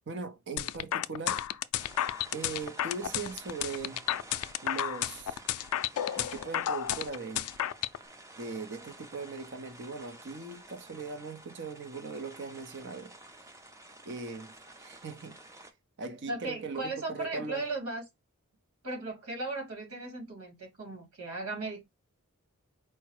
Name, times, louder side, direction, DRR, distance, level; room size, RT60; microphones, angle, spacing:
voice 1, 0.1-1.4 2.3-4.0 4.6-5.4 6.1-7.5 8.4-13.1 14.1-14.5 14.8-15.4 16.0-17.7, right 4 dB, 55° right, 0.7 m, -39 dB
sound 1, 0.6-8.0, left 11 dB, 75° left, 0.3 m, -32 dB
sound 2, 1.8-15.7, right 1 dB, 15° right, 0.5 m, -51 dB
voice 2, 16.3-18.0 18.8-21.8, right 2 dB, 80° right, 2.0 m, -36 dB
4.6 x 2.1 x 4.6 m
head